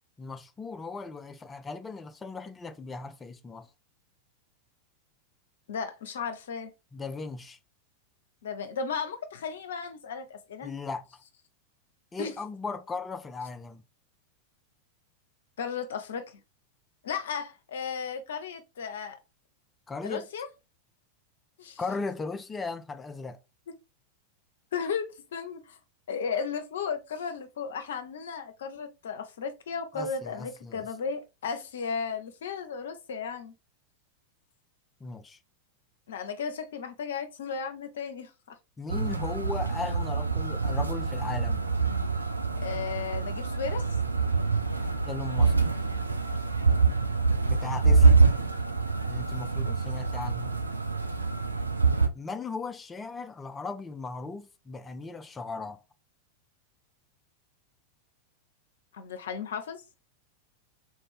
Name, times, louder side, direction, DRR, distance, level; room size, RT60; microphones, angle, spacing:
voice 1, 0.2-3.7 6.9-7.6 10.6-11.0 12.1-13.8 19.9-20.3 21.8-23.4 29.9-30.9 35.0-35.4 38.8-41.6 45.0-45.5 47.5-48.1 49.0-50.7 52.1-55.8, left 4 dB, 15° left, 0.5 m, -37 dB
voice 2, 5.7-6.7 8.4-10.7 12.2-12.4 15.6-16.4 17.0-19.2 20.0-20.5 21.6-21.8 23.7-23.8 24.7-25.8 26.1-33.5 36.1-38.3 42.6-43.8 49.6-49.7 58.9-59.8, left 6 dB, 60° left, 0.7 m, -35 dB
sound 1, 38.9-52.1, right 4 dB, 80° right, 0.5 m, -25 dB
3.8 x 2.6 x 3.4 m
figure-of-eight pair, 90°, 0 cm